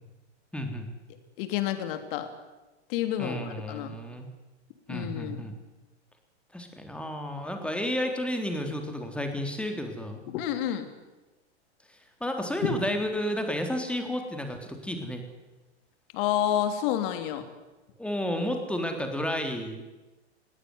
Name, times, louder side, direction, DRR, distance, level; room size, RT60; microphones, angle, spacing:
voice 1, 0.5-0.9 3.2-4.3 4.9-5.5 6.5-10.2 11.9-15.2 18.0-19.8, equal, 5° left, 4 dB, 3.3 m, -32 dB
voice 2, 1.4-2.3 2.9-4.0 4.9-5.4 10.3-10.9 12.6-12.7 16.1-17.4, left 11 dB, 50° left, 8 dB, 3.3 m, -29 dB
20.0 x 17.0 x 9.7 m, 1.1 s
hypercardioid pair, 110°, 34 cm